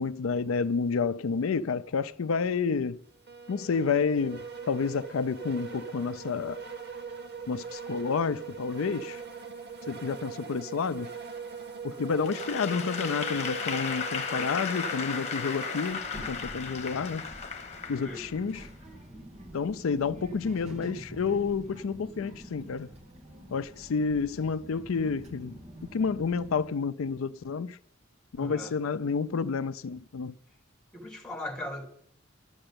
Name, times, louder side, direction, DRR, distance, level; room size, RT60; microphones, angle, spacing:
voice 1, 0.0-3.0 3.5-6.6 7.5-9.2 9.9-11.1 11.8-17.3 17.9-18.7 19.5-22.9 23.5-25.6 25.9-27.8 28.3-30.3, left 5 dB, 80° left, 0.4 m, -30 dB
sound 1, 3.3-15.9, right 5 dB, 55° right, 1.5 m, -41 dB
Applause / Crowd, 12.2-18.6, left 5 dB, 35° left, 1.4 m, -35 dB
Child speech kid speaking, 15.9-26.7, right 1 dB, 35° right, 1.8 m, -46 dB
voice 2, 28.4-28.7 30.9-31.9, left 1 dB, 5° left, 3.0 m, -39 dB
12.5 x 7.8 x 8.7 m
head